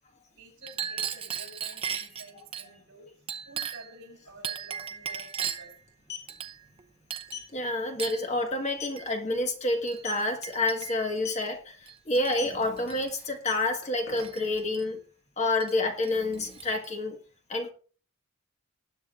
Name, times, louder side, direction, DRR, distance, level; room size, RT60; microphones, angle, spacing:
voice 1, 0.4-3.1 3.4-5.7, right 1 dB, 55° right, 5.8 m, -50 dB
Chink clink, 0.6-2.7 3.3-4.0 4.4-5.8 6.3-6.8 7.1-7.4 8.0-8.3 9.0-9.1 9.9-10.0 10.4-11.1 11.9-12.5 12.8-13.1 14.2-14.8 15.6-15.7 16.0-16.9, right 8 dB, 25° right, 0.7 m, -37 dB
sound 1, 4.3-4.4 4.6-4.8 5.8-6.3 7.3-7.5 7.9-8.1 8.5-8.6 8.8-9.1 9.9-10.3 11.2-11.5 12.3-12.6 13.3-14.6, left 8 dB, 50° left, 5.0 m, -39 dB
voice 2, 7.5-15.0 15.4-17.2 17.5-17.7, left 2 dB, 30° left, 1.5 m, -28 dB
20.0 x 9.5 x 2.5 m
head